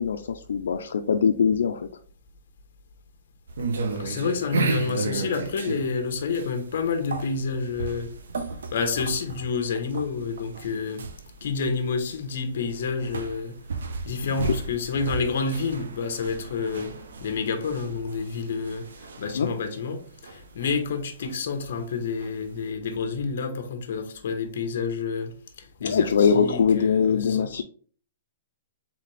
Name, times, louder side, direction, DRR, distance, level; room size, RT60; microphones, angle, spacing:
voice 1, 0.0-1.9 14.2-14.3 19.3-19.5 25.8-27.6, left 6 dB, 85° left, 0.4 m, -22 dB
sound 1, 3.5-22.7, right 4 dB, 85° right, 0.7 m, -34 dB
voice 2, 3.9-8.1 8.7-11.1 11.4-13.6 14.0-16.9 17.2-27.5, left 5 dB, 50° left, 0.9 m, -29 dB
4.1 x 3.7 x 3.2 m
hypercardioid pair, 180°, 0 cm